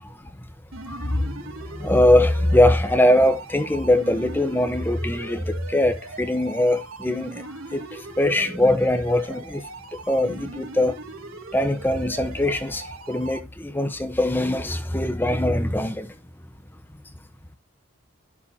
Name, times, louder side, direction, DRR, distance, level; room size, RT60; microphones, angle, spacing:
sound 1, 0.7-13.4, right 2 dB, 90° right, 3.2 m, -40 dB
voice 1, 0.9-1.2 1.8-5.4 5.7-7.4 7.7-7.8 8.2-9.6 10.1-11.0 11.5-16.1, left 1 dB, 10° left, 1.0 m, -21 dB
12.0 x 7.2 x 4.3 m
head